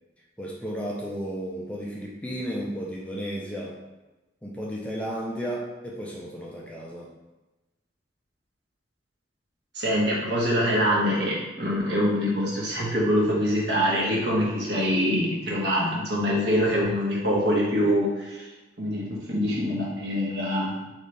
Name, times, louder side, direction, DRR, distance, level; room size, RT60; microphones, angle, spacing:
voice 1, 0.4-3.8 4.4-7.1, equal, 5° left, -4 dB, 0.5 m, -33 dB
voice 2, 9.7-18.4 18.8-20.7, equal, 65° right, -5 dB, 1.2 m, -24 dB
4.1 x 3.2 x 3.2 m, 1.1 s
head